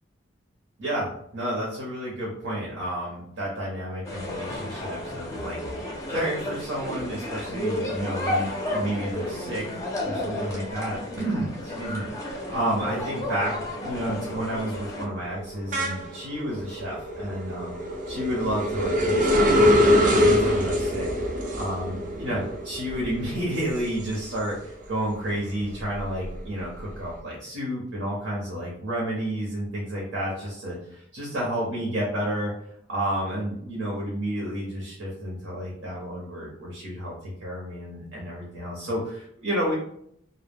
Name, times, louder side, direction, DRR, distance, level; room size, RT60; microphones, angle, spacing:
voice 1, 0.8-17.7 18.1-21.1 21.5-32.5 32.9-39.7, equal, 90° right, -4 dB, 0.7 m, -31 dB
sound 1, 4.0-15.0, left 1 dB, 15° left, 0.4 m, -32 dB
sound 2, 13.0-13.2 13.6-24.9 25.3-27.0, left 1 dB, 40° right, 0.4 m, -25 dB
2.1 x 2.0 x 3.4 m, 0.69 s
head